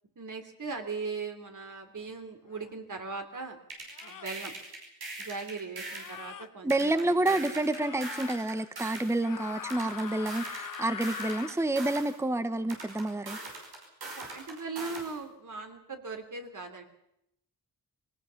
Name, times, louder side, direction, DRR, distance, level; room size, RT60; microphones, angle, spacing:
voice 1, 0.2-3.6 4.0-4.5 5.2-7.6 14.2-16.8, right 4 dB, 55° right, 5 dB, 3.2 m, -39 dB
sound 1, 2.5-2.7 3.9-4.4 5.8-6.5 7.7-8.4 9.2-11.6, left 7 dB, 60° left, 1.1 m, -42 dB
sound 2, 3.7-6.2 6.7-9.1 9.7-12.1 12.7-15.1, right 2 dB, 90° right, 5.6 m, -41 dB
voice 2, 6.6-13.4, right 2 dB, 5° right, 12 dB, 0.9 m, -29 dB
22.0 x 18.0 x 7.1 m, 0.80 s
wide cardioid pair, 85°, 37 cm